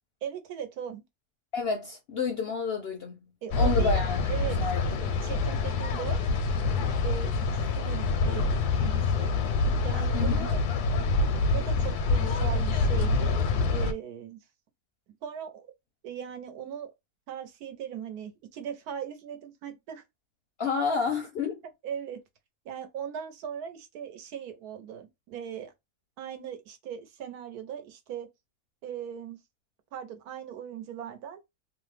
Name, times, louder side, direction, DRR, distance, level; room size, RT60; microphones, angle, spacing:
voice 1, 0.2-1.0 3.4-4.0 4.3-4.6 5.0-6.2 7.0-9.3 9.8-10.6 11.5-13.4 13.7-14.4 15.2-15.7 16.0-16.9 17.3-20.0 21.8-22.2 22.6-25.7 26.2-28.3 28.8-29.4 29.9-31.4, right 8 dB, 80° right, 1.2 m, -39 dB
voice 2, 1.5-3.2 3.6-5.0 10.1-10.5 20.6-21.6, left 5 dB, 60° left, 0.6 m, -30 dB
sound 1, 3.5-13.9, left 3 dB, 85° left, 1.1 m, -26 dB
3.0 x 2.1 x 3.2 m
omnidirectional pair, 1.6 m